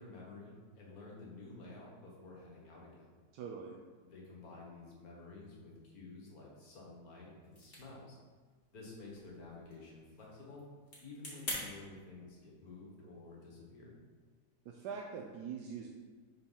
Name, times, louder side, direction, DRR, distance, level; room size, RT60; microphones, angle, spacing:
voice 1, 0.0-3.1 4.0-8.2 8.7-10.7 11.0-13.9, left 3 dB, 65° left, -3 dB, 1.7 m, -51 dB
voice 2, 3.3-3.8 14.6-15.9, right 6 dB, 85° right, 0 dB, 1.2 m, -43 dB
sound 1, 7.4-11.6, left 1 dB, 35° left, 1.8 m, -47 dB
4.4 x 4.1 x 5.5 m, 1.4 s
omnidirectional pair, 1.7 m